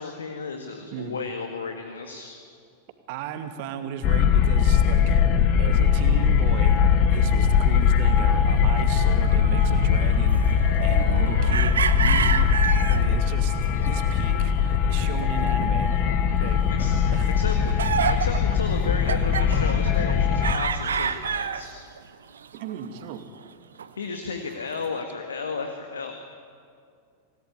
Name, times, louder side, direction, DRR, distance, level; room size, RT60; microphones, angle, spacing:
voice 1, 0.0-2.3 16.4-17.0 17.3-21.7 24.0-26.1, left 4 dB, 70° left, 5 dB, 1.9 m, -34 dB
voice 2, 3.1-5.2 5.6-6.8 7.1-12.5 12.9-13.6 13.9-15.9 16.4-16.6 17.1-17.3 22.5-23.2, right 8 dB, 50° right, 7 dB, 2.4 m, -35 dB
sound 1, 4.0-20.5, left 7 dB, 40° left, 1.8 m, -21 dB
sound 2, 7.3-7.4 8.6-13.1 13.6-14.8 15.0-16.1 16.3-16.5 17.2-22.0 22.3-23.1 23.4-23.5 23.8-23.9 24.6-24.9, right 7 dB, 70° right, 1.1 m, -29 dB
27.0 x 18.5 x 9.8 m, 2.3 s
figure-of-eight pair, 90°, 0 cm